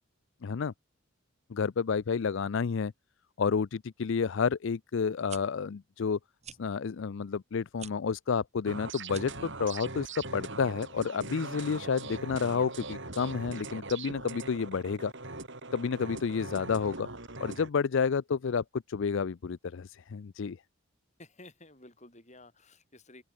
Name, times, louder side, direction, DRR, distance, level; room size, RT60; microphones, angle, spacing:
voice 1, 0.4-0.7 1.5-2.9 3.4-6.2 6.6-15.1 15.7-17.1 17.4-20.6, left 5 dB, 60° left, 0.4 m, -30 dB
sound 1, 5.3-5.4 6.4-6.6 7.7-7.9 9.0-9.4, right 8 dB, 30° right, 2.8 m, -46 dB
sound 2, 8.7-17.7, right 3 dB, 55° right, 5.2 m, -41 dB
voice 2, 21.2-23.2, left 2 dB, 30° left, 7.9 m, -53 dB
open air
head